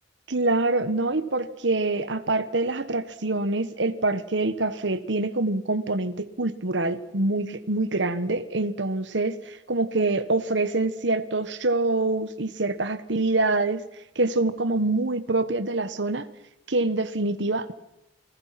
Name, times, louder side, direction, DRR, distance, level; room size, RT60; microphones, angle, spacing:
voice 1, 0.3-13.8 14.1-16.3 16.7-17.7, right 2 dB, 75° right, 11 dB, 1.4 m, -25 dB
29.5 x 20.5 x 5.9 m, 0.89 s
head